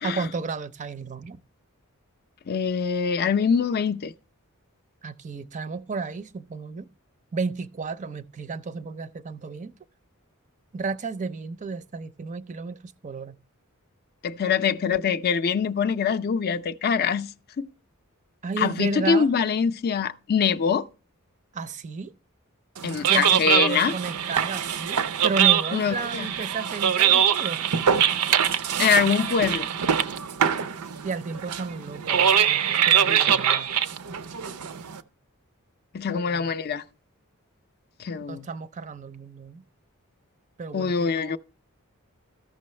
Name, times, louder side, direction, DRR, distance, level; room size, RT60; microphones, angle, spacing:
voice 1, 0.0-1.4 5.0-6.9 7.3-9.7 10.7-13.4 18.4-19.3 21.5-22.1 23.1-27.6 31.0-33.7 36.1-36.5 38.3-39.6 40.6-41.4, right 4 dB, 35° right, 0.5 m, -33 dB
voice 2, 2.5-4.1 14.2-17.3 17.6-17.7 18.6-20.9 22.8-23.9 25.7-26.3 28.8-29.7 33.1-33.3 35.9-36.8 38.0-38.5 40.7-41.4, left 6 dB, 45° left, 0.4 m, -24 dB
sound 1, 22.8-35.0, right 8 dB, 85° right, 0.6 m, -23 dB
14.0 x 6.1 x 3.2 m
head